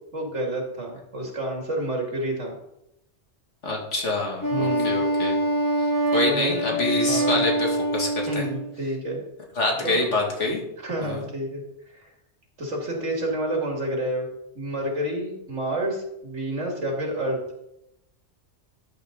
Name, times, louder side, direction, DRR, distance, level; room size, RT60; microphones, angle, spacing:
voice 1, 0.1-2.6 4.5-5.0 6.2-6.8 7.1-7.4 8.3-9.2 9.8-10.0 10.8-11.6 11.9-12.1 12.6-14.3 14.5-17.4, right 1 dB, 90° right, 0 dB, 2.8 m, -29 dB
voice 2, 3.6-5.4 6.1-8.5 9.6-10.6 11.0-11.2, left 2 dB, 85° left, 0 dB, 2.6 m, -26 dB
Wind instrument woodwind instrument, 4.4-8.7, right 1 dB, 15° left, 1.9 m, -24 dB
13.0 x 8.2 x 4.0 m, 0.85 s
omnidirectional pair, 1.2 m